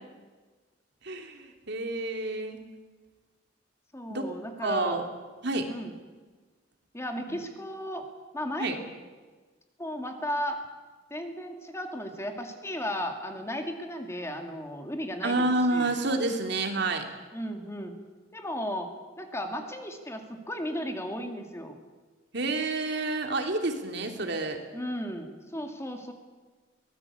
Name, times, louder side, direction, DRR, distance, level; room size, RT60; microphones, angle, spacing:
voice 1, 1.0-2.6 4.1-4.3 4.6-5.0 5.4-5.7 7.3-7.4 8.6-8.8 15.2-17.1 22.3-24.6, right 2 dB, 60° right, 4 dB, 2.9 m, -29 dB
voice 2, 3.9-5.0 5.7-6.0 6.9-8.0 8.3-8.8 9.8-10.6 11.1-15.9 17.3-17.9 18.3-21.7 24.7-26.1, equal, 15° left, 4 dB, 2.2 m, -35 dB
23.5 x 18.5 x 8.5 m, 1.4 s
head